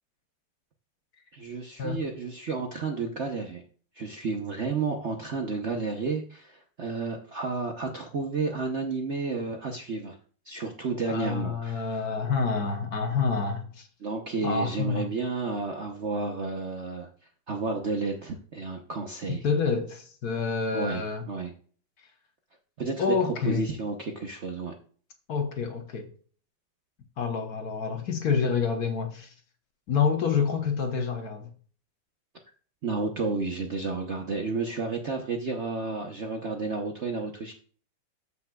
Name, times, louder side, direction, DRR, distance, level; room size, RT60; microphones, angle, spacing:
voice 1, 1.3-3.6 3.9-10.2 10.5-12.0 14.0-17.1 17.5-19.4 20.7-21.5 22.8-24.7 32.8-37.5, right 4 dB, 55° right, 0.8 m, -31 dB
voice 2, 11.1-13.9 14.4-15.1 19.4-21.3 23.0-23.7 25.3-26.1 27.2-29.3 29.9-31.5, left 5 dB, 55° left, 1.3 m, -28 dB
13.5 x 5.8 x 2.3 m
omnidirectional pair, 2.2 m